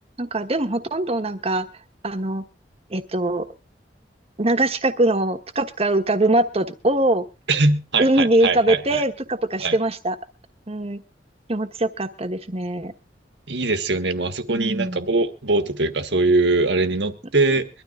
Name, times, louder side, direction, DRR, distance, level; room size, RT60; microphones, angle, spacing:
voice 1, 0.2-1.7 2.0-2.4 2.9-3.5 4.4-7.2 8.0-10.1 10.7-11.0 11.5-12.9 14.5-15.1, right 1 dB, 35° right, 8 dB, 1.2 m, -22 dB
voice 2, 7.5-9.0 9.6-9.8 13.5-17.7, right 3 dB, 75° right, 9 dB, 1.5 m, -22 dB
23.0 x 12.5 x 2.4 m, 0.29 s
head